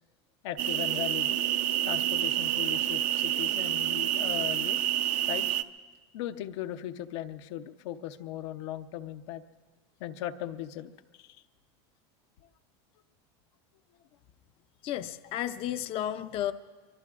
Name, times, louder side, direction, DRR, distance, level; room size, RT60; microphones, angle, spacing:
voice 1, 0.4-1.4 1.8-4.8 5.3-5.6 6.1-9.4 10.0-10.9 11.2-11.4, left 12 dB, 80° left, 7 dB, 0.7 m, -38 dB
sound 1, 0.6-5.6, right 12 dB, 60° right, 0.5 m, -28 dB
voice 2, 14.8-16.5, left 11 dB, 40° left, 10 dB, 0.5 m, -32 dB
24.0 x 23.5 x 2.4 m, 1.4 s
supercardioid pair, 130°, 14 cm